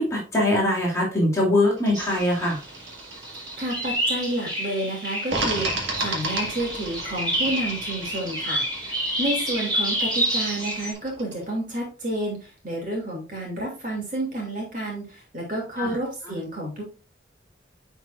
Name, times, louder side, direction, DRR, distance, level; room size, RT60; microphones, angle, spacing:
voice 1, 0.0-2.6 15.8-15.9, left 1 dB, 15° left, -5 dB, 2.9 m, -22 dB
sound 1, 1.8-4.4 5.3-11.4, right 2 dB, 80° right, 1.7 m, -34 dB
sound 2, 1.9-10.9, right 1 dB, 20° right, 2.8 m, -29 dB
voice 2, 3.6-16.8, right 1 dB, 45° right, -2 dB, 2.6 m, -30 dB
9.7 x 4.5 x 2.5 m, 0.34 s
head